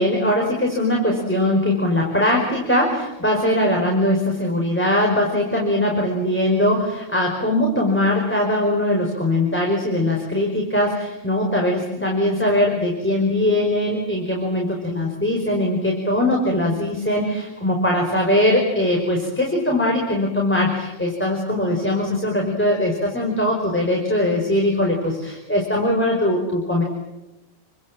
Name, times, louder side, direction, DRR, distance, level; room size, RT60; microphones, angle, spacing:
voice 1, 0.0-26.8, left 1 dB, 5° left, 0 dB, 5.1 m, -21 dB
29.5 x 25.5 x 7.6 m, 0.96 s
omnidirectional pair, 1.5 m